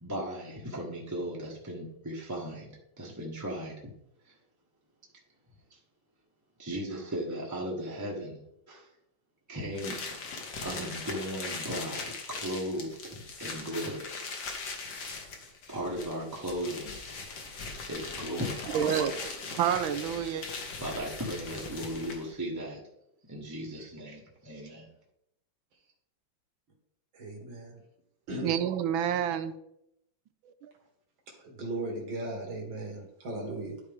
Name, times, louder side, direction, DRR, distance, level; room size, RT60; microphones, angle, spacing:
voice 1, 0.0-3.9 4.2-4.3 5.7-5.8 6.6-8.4 8.7-8.9 9.5-10.1 10.3-14.1 15.7-17.0 17.9-18.7 20.8-22.8 23.3-24.9, equal, 10° right, -3 dB, 1.0 m, -37 dB
sound 1, 9.7-22.3, left 4 dB, 60° left, 1.7 m, -40 dB
voice 2, 18.7-20.4 28.4-29.5 30.6-30.7, right 9 dB, 90° right, 11 dB, 1.4 m, -29 dB
voice 3, 27.1-27.8 28.3-28.5 31.3-33.8, right 1 dB, 70° right, 0 dB, 2.3 m, -37 dB
12.0 x 4.6 x 3.5 m, 0.77 s
omnidirectional pair, 2.2 m